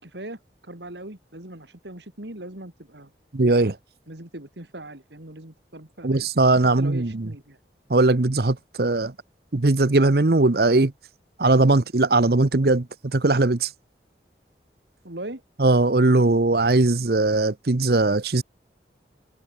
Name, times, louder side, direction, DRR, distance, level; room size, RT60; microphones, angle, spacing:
voice 1, 0.0-3.1 4.1-6.3 6.8-7.6 15.0-15.4, right 1 dB, 75° right, 3.5 m, -39 dB
voice 2, 3.3-3.8 6.0-7.3 7.9-9.1 9.5-10.9 11.4-13.7 15.6-18.4, right 2 dB, 60° right, 0.9 m, -19 dB
head